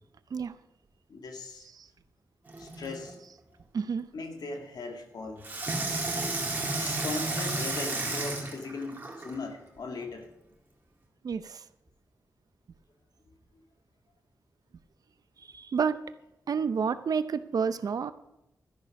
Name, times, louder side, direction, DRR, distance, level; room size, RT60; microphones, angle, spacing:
voice 1, 1.1-1.7 2.6-3.2 4.1-5.5 6.8-10.3, left 3 dB, 80° left, 4 dB, 1.9 m, -38 dB
Water tap faucet / Sink (filling or washing), 2.5-3.1 5.4-9.4 10.0-10.1, right 2 dB, 25° right, 2.1 m, -32 dB
voice 2, 3.7-4.0 11.2-11.6 15.5-16.0 16.5-18.1, right 6 dB, 65° right, 13 dB, 0.6 m, -29 dB
12.5 x 10.5 x 5.3 m, 0.86 s
wide cardioid pair, 165°, 7 cm